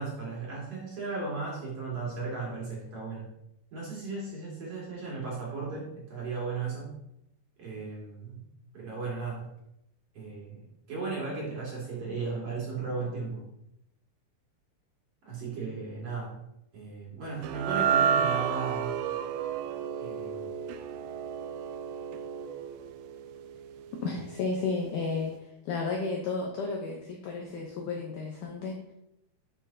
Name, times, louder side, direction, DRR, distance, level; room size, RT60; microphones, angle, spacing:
voice 1, 0.0-3.2 3.7-6.9 7.6-8.4 8.7-9.4 10.1-10.6 10.9-13.4 15.2-16.3 16.7-18.9 20.0-20.5, right 4 dB, 45° right, -4 dB, 2.3 m, -35 dB
sound 1, 17.4-23.8, right 8 dB, 85° right, 2.2 m, -31 dB
voice 2, 24.0-25.3 25.6-28.9, left 4 dB, 90° left, 0 dB, 1.8 m, -32 dB
10.5 x 6.3 x 2.7 m, 0.82 s
omnidirectional pair, 4.8 m